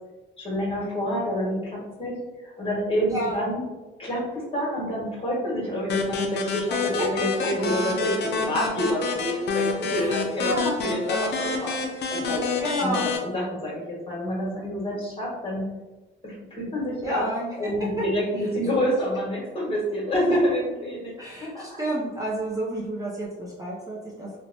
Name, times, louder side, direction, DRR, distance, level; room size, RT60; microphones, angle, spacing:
voice 1, 0.4-2.1 2.6-3.6 4.0-4.2 4.5-10.5 10.8-11.7 12.1-15.6 16.2-17.2 17.6-21.1 21.4-21.8, equal, 30° left, -5 dB, 1.3 m, -28 dB
sound 1, 5.9-13.2, left 4 dB, 60° left, 0.5 m, -28 dB
voice 2, 9.9-10.8 12.6-13.1 17.0-17.7 21.2-24.4, right 1 dB, 15° right, -6 dB, 0.6 m, -30 dB
2.8 x 2.1 x 2.5 m, 1.1 s
cardioid pair, 90°, 20 cm